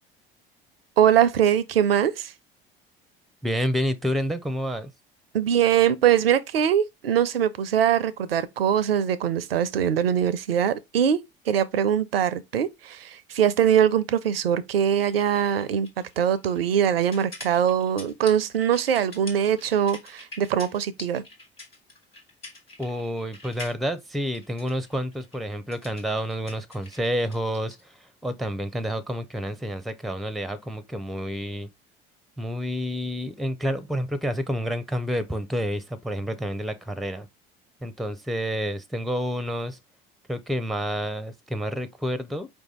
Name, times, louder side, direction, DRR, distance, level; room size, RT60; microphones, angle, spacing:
voice 1, 1.0-2.3 5.3-11.2 11.5-15.9 16.2-21.2, right 9 dB, 80° right, 0.5 m, -22 dB
voice 2, 3.4-4.9 22.8-31.7 32.4-37.3 37.8-39.8 40.3-42.5, equal, ahead, 0.5 m, -29 dB
sound 1, 15.1-27.8, left 2 dB, 90° left, 1.2 m, -45 dB
4.8 x 2.7 x 3.6 m
figure-of-eight pair, 60°, 29 cm